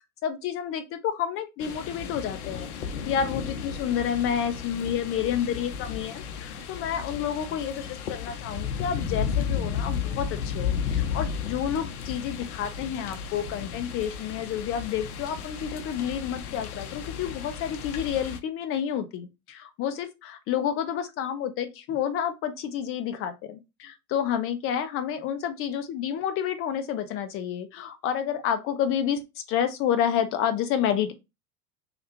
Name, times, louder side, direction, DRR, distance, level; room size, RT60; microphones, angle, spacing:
voice 1, 0.0-2.7 3.0-7.8 8.1-29.2 29.5-31.1, left 9 dB, 30° left, 0.6 m, -29 dB
sound 1, 1.6-18.4, left 7 dB, 65° left, 0.7 m, -33 dB
3.3 x 2.4 x 3.0 m
figure-of-eight pair, 90°, 48 cm